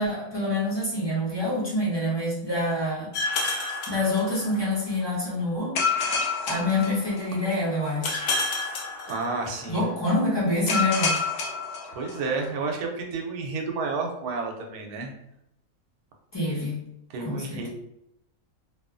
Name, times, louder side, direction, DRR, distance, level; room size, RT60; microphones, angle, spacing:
voice 1, 0.0-3.1 3.9-5.7 6.4-8.2 9.7-11.2 16.3-16.8 17.2-17.7, left 1 dB, 25° left, -7 dB, 0.6 m, -26 dB
sound 1, 3.1-4.7 5.7-7.5 8.0-9.7 10.7-12.4, left 4 dB, 65° left, 0.6 m, -28 dB
voice 2, 9.1-9.8 11.9-15.2 17.1-17.7, right 4 dB, 85° right, 2 dB, 1.1 m, -31 dB
2.7 x 2.3 x 2.4 m, 0.83 s
omnidirectional pair, 1.6 m